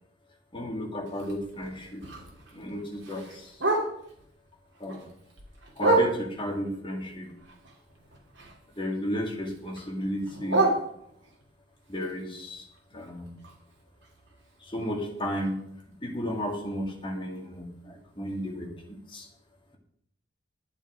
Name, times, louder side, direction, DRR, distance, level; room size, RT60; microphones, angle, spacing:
voice 1, 0.5-2.0 2.5-3.6 4.8-5.1 5.8-7.3 8.8-10.8 11.9-13.3 14.6-15.6 16.0-18.7 19.1-19.3, equal, 25° left, 1 dB, 2.1 m, -33 dB
Bark, 1.1-4.3 4.7-6.6 7.0-8.9 9.1-11.4 11.9-15.8 16.1-16.2 16.5-16.9 17.4-17.5 17.8-17.9 18.4-18.5, right 2 dB, 60° right, 2.8 m, -31 dB
12.0 x 9.1 x 4.9 m, 0.72 s
head